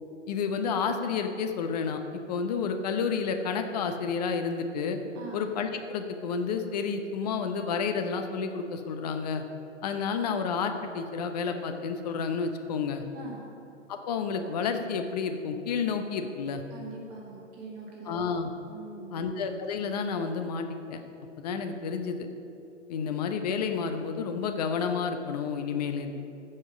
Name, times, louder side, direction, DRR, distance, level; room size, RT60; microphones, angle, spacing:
voice 1, 0.3-5.0 5.3-9.4 9.8-13.0 13.9-16.6 18.0-18.5 19.1-21.0 21.4-22.2 22.9-26.2, left 5 dB, 35° left, 6 dB, 0.8 m, -30 dB
voice 2, 13.1-13.5 16.7-18.2 18.7-19.3, right 4 dB, 30° right, -2 dB, 1.9 m, -43 dB
15.5 x 5.4 x 5.2 m, 2.7 s
figure-of-eight pair, 125°, 37 cm